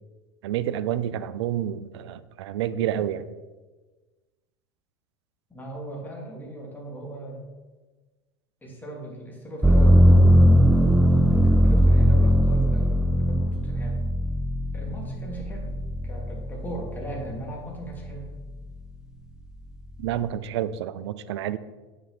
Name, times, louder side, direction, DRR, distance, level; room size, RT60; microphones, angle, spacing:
voice 1, 0.4-3.3 20.0-21.6, right 11 dB, 80° right, 15 dB, 0.5 m, -29 dB
voice 2, 5.5-7.4 8.6-10.4 11.3-14.0 14.7-15.7 16.0-18.3, right 1 dB, 15° left, -2 dB, 2.9 m, -38 dB
sound 1, 9.6-17.4 17.9-18.7, equal, 5° right, 0.5 m, -19 dB
8.9 x 6.3 x 4.2 m, 1.3 s
hypercardioid pair, 90°, 14 cm